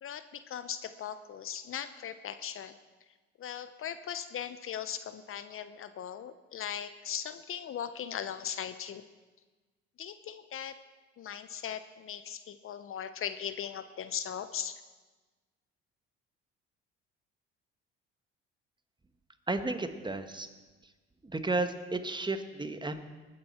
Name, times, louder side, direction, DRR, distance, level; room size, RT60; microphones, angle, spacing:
voice 1, 0.0-2.8 3.4-9.0 10.0-10.8 11.2-14.8, left 9 dB, 45° left, 12 dB, 0.7 m, -39 dB
voice 2, 19.5-20.5 21.3-23.1, right 2 dB, 15° right, 9 dB, 1.2 m, -33 dB
19.0 x 9.4 x 4.3 m, 1.3 s
hypercardioid pair, 60°, 31 cm